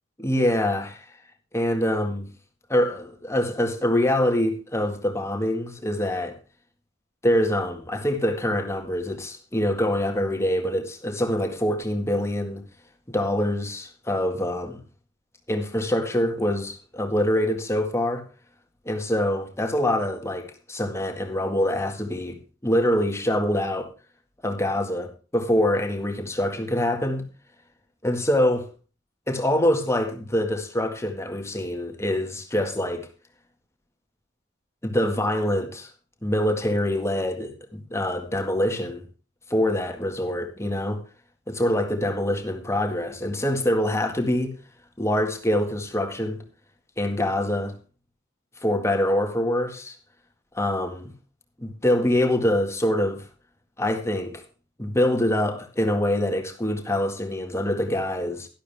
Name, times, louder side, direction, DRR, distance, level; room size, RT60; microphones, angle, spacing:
voice 1, 0.2-1.1 1.5-2.3 2.7-6.4 7.2-12.6 13.1-14.8 15.5-18.2 18.9-23.9 24.4-27.2 28.0-28.7 29.3-33.1 34.8-35.9 36.2-39.0 39.5-41.0 41.5-44.5 45.0-46.4 47.0-47.7 48.6-50.0 50.5-51.1 51.6-53.3 53.8-54.4 54.8-58.5, left 1 dB, 15° left, 1.9 m, -25 dB
12.0 x 11.5 x 3.5 m
head